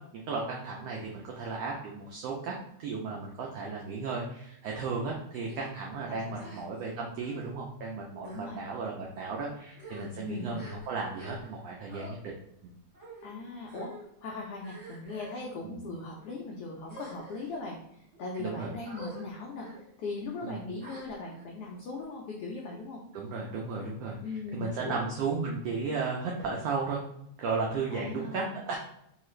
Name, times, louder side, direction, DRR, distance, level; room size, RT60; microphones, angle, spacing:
voice 1, 0.1-2.5 2.8-12.3 12.6-12.7 15.6-15.8 18.4-18.7 20.4-20.6 23.1-24.2 24.5-27.0 27.4-28.8, right 4 dB, 85° right, -2 dB, 1.4 m, -34 dB
sound 1, 5.4-5.7 6.3-6.9 7.2-7.5 8.2-8.4 9.1-9.3 9.7-11.6 11.9-12.1 12.9-13.3 13.7-14.0 14.6-15.4 16.1-16.3 16.8-17.5 18.1-18.4 18.8-19.2 19.6-19.8 20.8-21.4, right 1 dB, 40° right, 1.0 m, -48 dB
voice 2, 6.1-6.5 8.2-8.6 10.1-10.6 13.2-13.9 14.2-19.7 20.0-23.0 24.2-25.0 27.9-28.6, left 3 dB, 90° left, -2 dB, 1.3 m, -39 dB
4.6 x 2.4 x 3.1 m, 0.76 s
omnidirectional pair, 3.4 m